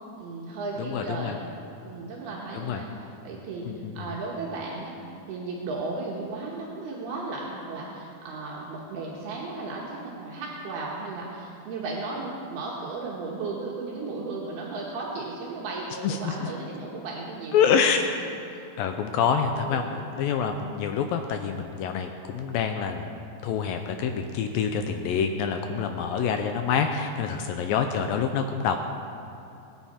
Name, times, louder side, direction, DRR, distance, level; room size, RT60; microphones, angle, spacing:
voice 1, 0.2-1.4 1.8-3.7 3.9-5.0 5.3-17.7 19.6-19.9 25.6-25.9 27.2-27.6, right 3 dB, 75° right, -4 dB, 3.3 m, -35 dB
voice 2, 0.8-1.4 2.5-2.8 3.7-4.2 16.0-16.5 17.5-18.0 18.8-28.8, left 7 dB, 80° left, 5 dB, 2.2 m, -27 dB
21.5 x 9.3 x 4.3 m, 2.9 s
omnidirectional pair, 4.6 m